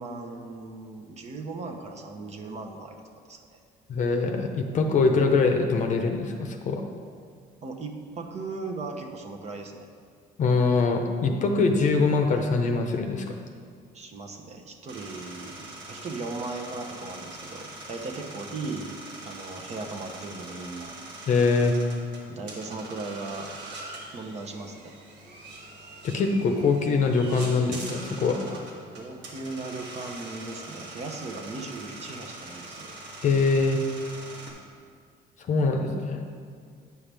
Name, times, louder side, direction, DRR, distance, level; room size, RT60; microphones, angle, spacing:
voice 1, 0.0-3.0 3.3-3.6 7.6-9.9 13.9-18.9 19.2-20.9 22.3-23.5 24.1-24.9 28.5-28.6 29.0-32.9, right 3 dB, 40° right, 4 dB, 0.8 m, -37 dB
voice 2, 3.9-6.8 10.4-13.4 21.3-21.8 26.0-28.4 33.2-33.8 35.4-36.2, left 4 dB, 45° left, 4 dB, 0.7 m, -23 dB
sound 1, 14.9-34.5, right 2 dB, 80° right, 1.7 m, -43 dB
9.4 x 5.6 x 3.4 m, 2.1 s
cardioid pair, 110°, 17 cm